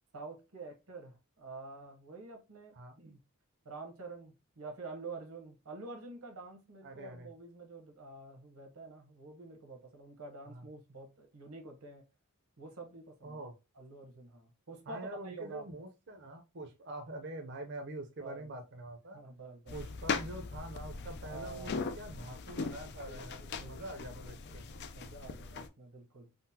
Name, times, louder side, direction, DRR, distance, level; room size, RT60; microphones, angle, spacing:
voice 1, 0.1-3.2 3.6-12.1 12.6-13.4 13.8-15.7 18.2-18.5 19.1-19.8 21.3-21.8 23.1-23.8 24.9-26.3, right 3 dB, 85° right, 1.0 m, -48 dB
voice 2, 6.8-7.3 10.4-10.7 13.2-13.5 14.9-19.2 19.7-24.7, right 1 dB, 55° right, 0.6 m, -45 dB
sound 1, 19.7-25.7, left 4 dB, 50° left, 0.3 m, -40 dB
3.8 x 2.1 x 2.7 m
head